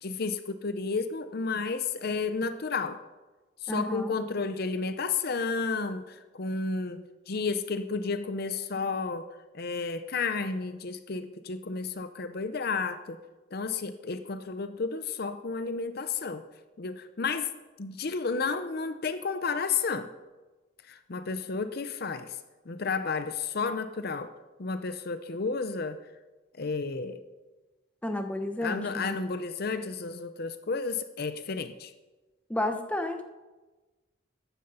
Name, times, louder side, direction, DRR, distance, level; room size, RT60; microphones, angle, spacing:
voice 1, 0.0-3.0 3.6-9.3 9.5-13.2 13.5-16.4 16.8-17.5 17.8-20.1 20.9-22.4 22.7-24.3 24.6-26.0 26.6-27.2 28.6-31.9, left 4 dB, 50° left, 10 dB, 0.6 m, -32 dB
voice 2, 3.7-4.1 28.0-29.2 32.5-33.2, left 1 dB, 5° left, 6 dB, 0.9 m, -31 dB
14.5 x 10.5 x 5.6 m, 1.2 s
head